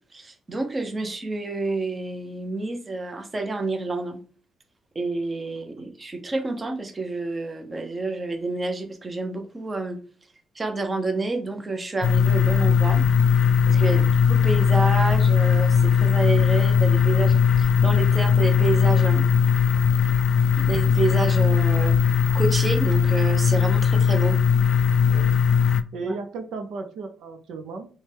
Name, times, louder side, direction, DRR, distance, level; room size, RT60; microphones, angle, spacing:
voice 1, 0.1-4.2 4.9-10.0 10.5-13.0 13.7-14.0 14.3-19.3 20.6-24.4 26.0-26.1, right 3 dB, 25° right, 5 dB, 0.8 m, -28 dB
sound 1, 12.0-25.8, left 7 dB, 60° left, 0.4 m, -19 dB
voice 2, 25.6-27.9, right 3 dB, 80° right, 5 dB, 0.6 m, -35 dB
6.1 x 2.2 x 3.4 m, 0.40 s
cardioid pair, 90°, 0 cm